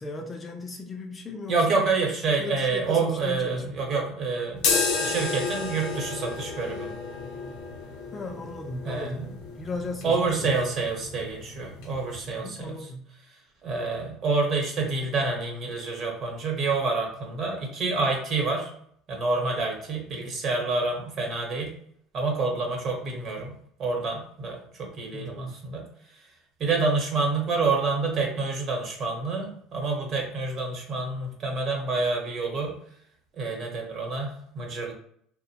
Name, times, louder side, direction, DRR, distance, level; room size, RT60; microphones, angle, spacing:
voice 1, 0.0-1.8 2.4-3.7 8.1-10.5 12.4-13.1 25.1-25.6, left 2 dB, 25° left, 4 dB, 0.3 m, -37 dB
voice 2, 1.5-4.7 5.0-6.9 8.8-9.2 10.0-12.7 13.6-18.7 19.1-21.7 22.1-23.5 23.8-25.8 26.6-32.7 33.4-34.9, right 3 dB, 45° right, 0 dB, 0.9 m, -27 dB
sound 1, 4.6-12.4, left 4 dB, 65° left, 0.6 m, -32 dB
2.8 x 2.0 x 2.8 m, 0.64 s
supercardioid pair, 115°, 0 cm